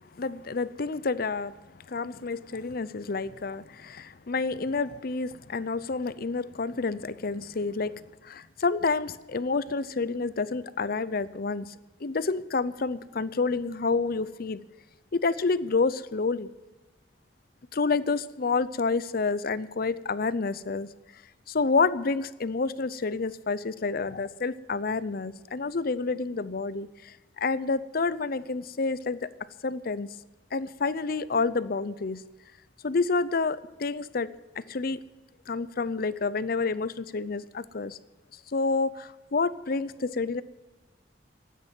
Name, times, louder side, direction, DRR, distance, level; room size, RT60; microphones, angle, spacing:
voice 1, 0.1-1.6 1.9-14.6 15.1-16.5 17.7-20.9 21.5-29.3 29.6-30.1 30.5-32.2 32.8-34.3 34.6-35.0 35.5-38.0 38.5-40.4, left 4 dB, 55° left, 16 dB, 0.6 m, -29 dB
13.0 x 9.4 x 9.1 m, 1.2 s
head